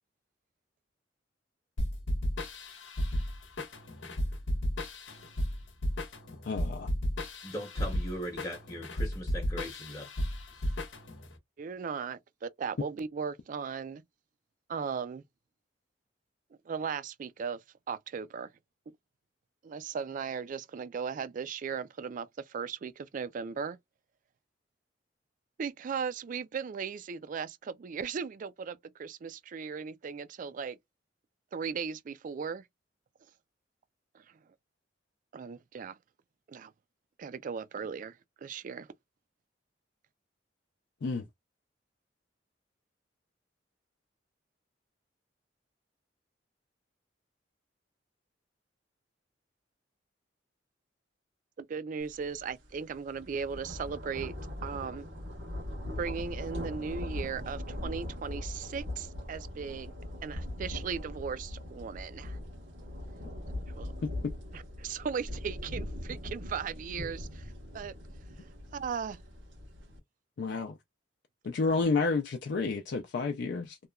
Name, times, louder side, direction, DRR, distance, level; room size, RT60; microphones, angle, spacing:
sound 1, 1.8-11.3, equal, 90° left, 0.8 m, -34 dB
voice 1, 6.4-6.9 41.0-41.3 64.0-64.3 70.4-70.8 71.4-73.8, left 4 dB, 65° left, 0.4 m, -30 dB
voice 2, 7.4-10.1 10.5-10.7, equal, 20° left, 0.8 m, -39 dB
voice 3, 11.6-14.0 14.7-15.2 16.7-18.5 19.6-23.8 25.6-30.8 31.5-32.6 34.1-34.2 35.3-36.0 36.5-36.7 37.2-38.9 51.6-54.3 54.6-55.1 56.0-59.9 60.2-62.4 63.8-63.9 64.5-68.0 68.7-69.2, right 6 dB, 45° right, 0.3 m, -37 dB
sound 2, 52.2-52.4 52.7-70.0, left 1 dB, 90° right, 1.2 m, -40 dB
2.9 x 2.2 x 2.2 m
head